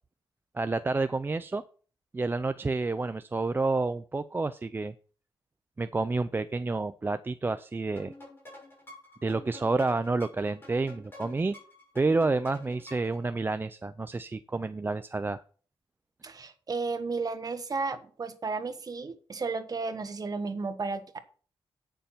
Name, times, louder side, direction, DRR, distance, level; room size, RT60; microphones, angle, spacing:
voice 1, 0.5-1.6 2.1-4.9 5.8-8.1 9.2-11.6 12.0-15.4, right 3 dB, 20° right, 0.4 m, -29 dB
sound 1, 8.0-13.2, left 2 dB, 25° left, 6.1 m, -48 dB
voice 2, 16.2-21.2, right 4 dB, 40° right, 1.3 m, -33 dB
9.0 x 6.9 x 5.7 m
cardioid pair, 105°, 10 cm